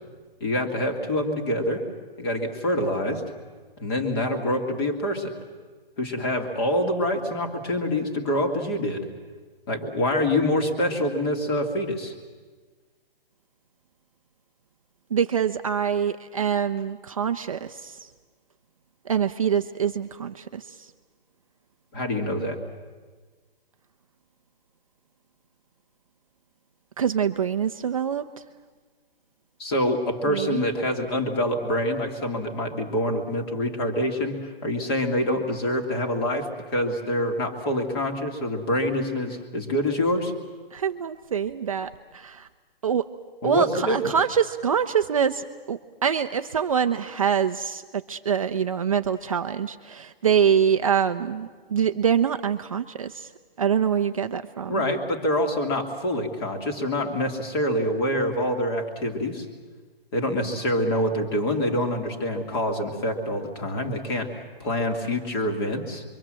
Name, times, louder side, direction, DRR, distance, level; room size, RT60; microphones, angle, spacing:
voice 1, 0.4-1.8 2.2-3.2 3.8-5.3 6.0-9.1 9.7-12.1 21.9-22.6 29.6-40.3 43.4-44.1 54.7-59.5 60.1-64.3 64.6-66.0, left 1 dB, 25° left, 5 dB, 2.4 m, -26 dB
voice 2, 15.1-18.0 19.1-20.9 27.0-28.2 30.3-30.6 40.7-42.5 42.8-43.1 43.4-47.8 48.1-53.3 53.6-54.8, right 8 dB, 35° right, 7 dB, 0.7 m, -25 dB
26.5 x 24.0 x 7.6 m, 1.4 s
hypercardioid pair, 170°, 30 cm